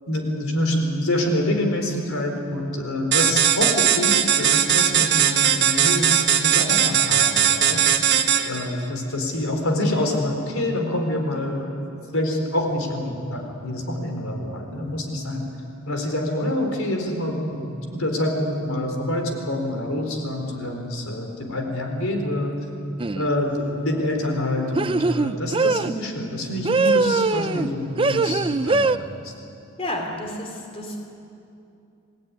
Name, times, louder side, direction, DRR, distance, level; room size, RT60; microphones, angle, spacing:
voice 1, 0.1-7.9 8.4-11.7 12.1-15.4 15.9-22.6 23.2-29.3, left 1 dB, 75° left, 2 dB, 4.2 m, -26 dB
sound 1, 3.1-8.7, right 9 dB, 55° right, 1.4 m, -19 dB
sound 2, 23.0-23.3 24.7-25.9 26.6-27.7 28.0-29.0, right 3 dB, 25° right, 0.5 m, -21 dB
voice 2, 29.8-31.0, left 1 dB, 30° left, 1 dB, 3.1 m, -30 dB
27.0 x 18.5 x 9.8 m, 2.7 s
head